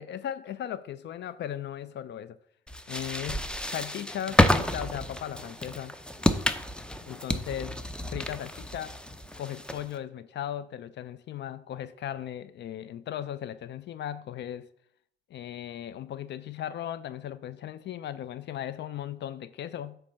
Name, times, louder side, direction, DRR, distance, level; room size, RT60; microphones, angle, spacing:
voice 1, 0.0-2.4 2.9-6.0 7.0-7.8 8.1-9.0 9.4-14.7 15.3-20.0, left 10 dB, 65° left, 0.4 m, -37 dB
sound 1, 2.7-10.0, left 1 dB, 5° left, 0.6 m, -29 dB
8.4 x 3.3 x 6.3 m
cardioid pair, 90°, 20 cm